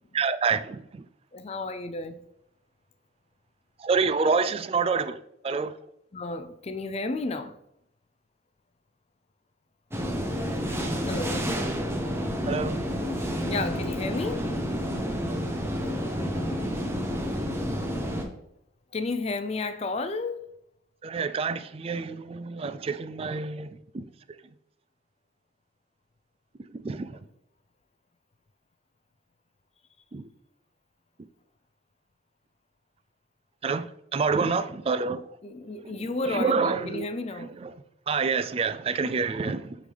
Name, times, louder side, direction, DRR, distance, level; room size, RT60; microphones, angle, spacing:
voice 1, 0.1-1.0 3.8-5.7 12.5-12.7 21.0-23.7 23.9-24.0 26.7-27.1 30.1-30.3 33.6-35.2 35.8-36.0 36.3-37.1 37.4-37.7 38.1-39.8, right 5 dB, 30° right, 0.3 m, -27 dB
voice 2, 1.3-2.2 6.1-7.6 11.0-11.5 13.5-14.5 18.9-20.5 35.4-37.5 39.4-39.6, left 3 dB, 35° left, 0.4 m, -32 dB
sound 1, 9.9-18.2, equal, 15° right, 0.8 m, -29 dB
8.1 x 3.9 x 3.3 m
head